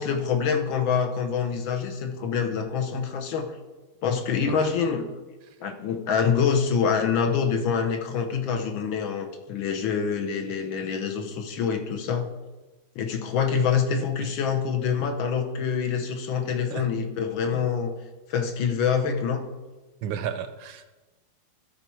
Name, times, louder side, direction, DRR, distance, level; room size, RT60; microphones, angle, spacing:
voice 1, 0.0-3.5 4.0-5.1 5.6-12.3 12.9-17.9 18.3-19.4, left 6 dB, 70° left, 5 dB, 1.5 m, -26 dB
voice 2, 20.0-20.9, right 8 dB, 75° right, 9 dB, 1.3 m, -33 dB
12.5 x 4.3 x 4.5 m, 1.2 s
omnidirectional pair, 2.4 m